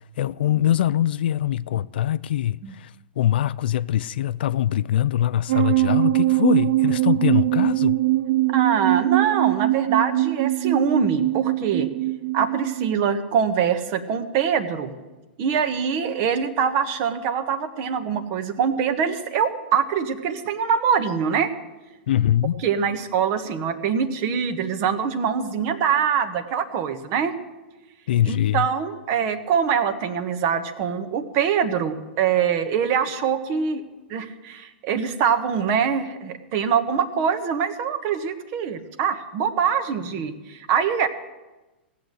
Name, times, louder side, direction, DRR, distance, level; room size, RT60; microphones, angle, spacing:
voice 1, 0.2-2.9 3.2-8.0 22.1-22.6 28.1-28.7, left 11 dB, 60° left, 0.4 m, -23 dB
sound 1, 5.5-12.9, right 18 dB, 65° right, 0.5 m, -22 dB
voice 2, 8.5-11.9 12.3-14.9 15.4-21.5 22.6-27.3 28.2-33.8 34.1-41.1, right 7 dB, 40° right, 1.3 m, -24 dB
17.0 x 7.7 x 8.0 m
figure-of-eight pair, 105°, 6 cm